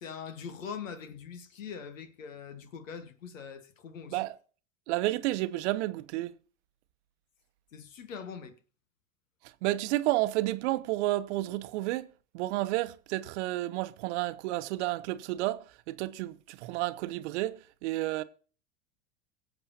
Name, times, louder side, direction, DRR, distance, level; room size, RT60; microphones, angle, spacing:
voice 1, 0.0-4.2 7.7-8.5, left 6 dB, 80° left, 1.6 m, -42 dB
voice 2, 4.9-6.3 9.6-12.1 12.3-18.2, right 17 dB, 60° right, 0.8 m, -31 dB
23.5 x 7.9 x 2.8 m
hypercardioid pair, 85°, 38 cm